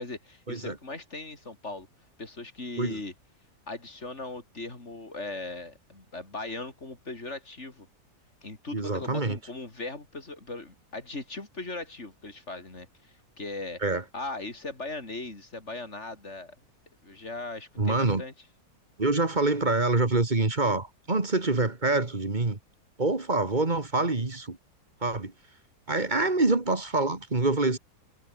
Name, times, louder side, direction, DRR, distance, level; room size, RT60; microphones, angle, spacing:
voice 1, 0.0-1.9 2.2-3.1 3.7-7.9 8.4-13.8 14.1-16.6 17.0-18.3, left 2 dB, 45° left, 4.7 m, -39 dB
voice 2, 8.7-9.4 13.8-14.0 17.8-18.2 19.0-22.6 23.0-24.6 25.0-25.3 25.9-27.8, right 3 dB, 30° right, 2.3 m, -26 dB
omnidirectional pair, 1.7 m